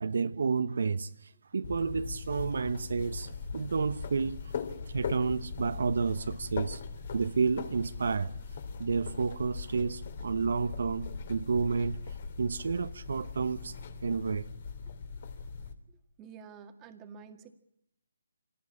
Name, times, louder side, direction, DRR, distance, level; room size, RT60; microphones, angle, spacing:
voice 1, 0.0-4.4 4.9-6.8 7.1-8.3 8.8-12.0 12.4-13.7 14.0-14.5, right 5 dB, 60° right, 1.0 m, -30 dB
sound 1, 1.6-15.7, left 5 dB, 45° left, 3.2 m, -40 dB
voice 2, 16.2-17.5, right 6 dB, 15° right, 1.9 m, -49 dB
26.5 x 18.0 x 8.6 m
figure-of-eight pair, 155°, 0 cm